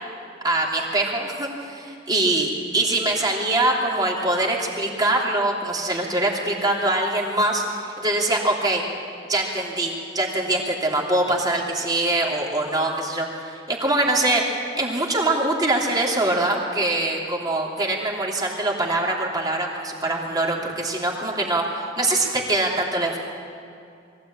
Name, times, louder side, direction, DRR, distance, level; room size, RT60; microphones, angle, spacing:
voice 1, 0.4-1.7 2.1-8.8 9.3-14.4 14.8-23.2, right 2 dB, 20° right, -2 dB, 3.1 m, -23 dB
22.5 x 16.0 x 8.8 m, 2.4 s
head